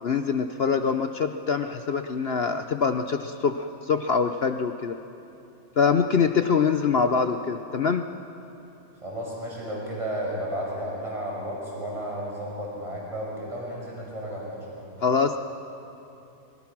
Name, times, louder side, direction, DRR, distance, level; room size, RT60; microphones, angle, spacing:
voice 1, 0.0-5.0 5.8-8.1 15.0-15.4, left 5 dB, 70° left, 8 dB, 0.6 m, -24 dB
voice 2, 9.0-14.8, equal, 15° right, -4 dB, 5.9 m, -33 dB
26.5 x 22.5 x 6.0 m, 2.9 s
omnidirectional pair, 2.0 m